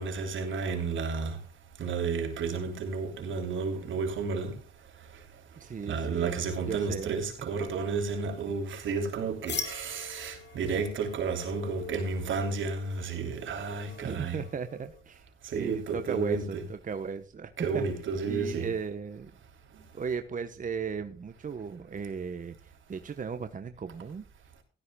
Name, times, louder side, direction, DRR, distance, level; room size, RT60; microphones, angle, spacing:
voice 1, 0.0-1.4 1.8-4.6 5.9-14.4 15.5-16.6 17.6-18.7, right 4 dB, 80° right, 3.3 m, -32 dB
voice 2, 5.6-6.3 6.7-7.2 14.0-15.2 15.5-17.9 18.3-19.3 19.9-24.2, right 6 dB, 40° right, 1.1 m, -36 dB
sound 1, 9.5-15.0, left 5 dB, 60° left, 2.4 m, -43 dB
16.5 x 13.0 x 2.3 m
cardioid pair, 85°, 20 cm